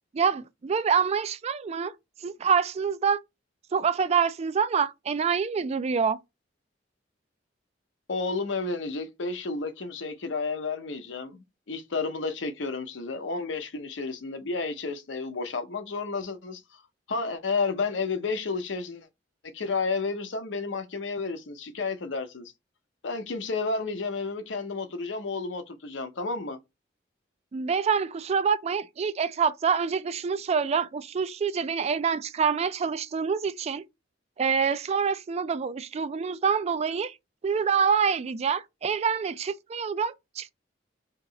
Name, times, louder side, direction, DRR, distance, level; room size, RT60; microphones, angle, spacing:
voice 1, 0.1-1.9 2.2-3.2 3.7-6.2 27.5-33.8 34.4-37.1 37.4-40.5, right 6 dB, 35° right, 0.3 m, -26 dB
voice 2, 8.1-16.8 17.1-19.1 19.4-22.5 23.0-26.6, left 4 dB, 80° left, 0.7 m, -31 dB
2.9 x 2.8 x 3.8 m
head